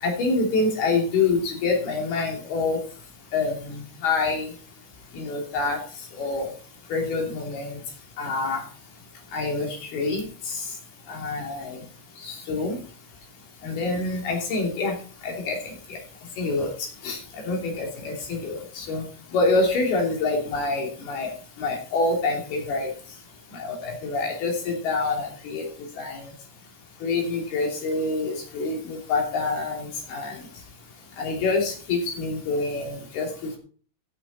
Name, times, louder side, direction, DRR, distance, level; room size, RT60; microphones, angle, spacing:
voice 1, 0.0-2.8 3.3-4.5 5.1-5.8 6.1-6.5 6.9-7.8 8.2-8.6 9.3-10.6 11.1-11.8 12.2-12.8 13.6-14.9 15.2-16.0 16.4-16.7 17.0-17.2 17.5-19.0 19.3-21.3 21.6-22.9 23.5-25.6 26.0-26.3 27.0-30.4 31.2-33.6, left 3 dB, 55° left, 1 dB, 4.5 m, -26 dB
14.5 x 9.1 x 4.0 m, 0.41 s
omnidirectional pair, 5.7 m